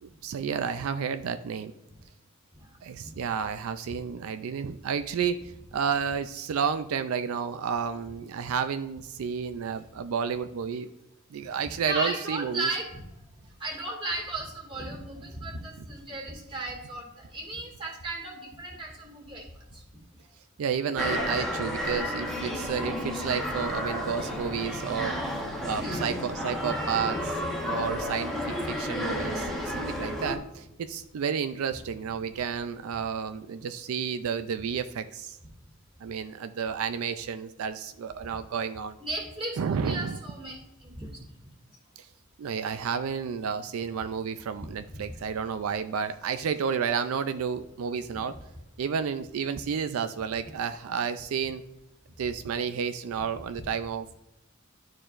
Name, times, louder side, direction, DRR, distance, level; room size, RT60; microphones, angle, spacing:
voice 1, 0.0-1.7 2.8-10.9 11.3-12.7 15.8-15.9 20.6-25.2 25.6-27.4 27.7-35.4 36.0-39.0 39.5-40.2 42.0-42.1 42.4-48.4 48.8-51.6 52.2-54.1, right 6 dB, 85° right, 10 dB, 0.4 m, -31 dB
voice 2, 11.8-13.0 13.6-19.4 19.7-19.8 25.7-26.1 30.0-30.1 39.0-41.1, right 2 dB, 25° right, -2 dB, 2.1 m, -35 dB
sound 1, 21.0-30.4, equal, ahead, 1.0 m, -32 dB
12.0 x 4.6 x 2.5 m, 0.93 s
head